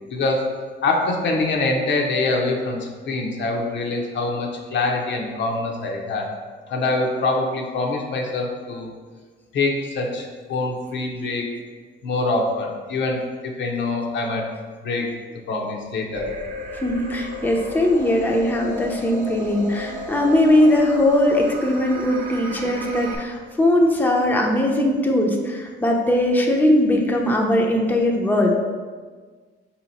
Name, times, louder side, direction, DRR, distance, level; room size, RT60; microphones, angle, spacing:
voice 1, 0.1-0.5 0.8-6.3 6.7-8.9 9.5-11.5 12.0-14.5 14.8-15.1 15.5-16.3, left 2 dB, 65° left, 0 dB, 0.7 m, -24 dB
sound 1, 16.1-23.2, left 1 dB, 45° right, 0.8 m, -34 dB
voice 2, 16.7-28.5, left 1 dB, 10° left, 0 dB, 0.6 m, -20 dB
4.1 x 2.9 x 4.0 m, 1.5 s
cardioid pair, 90°, 20 cm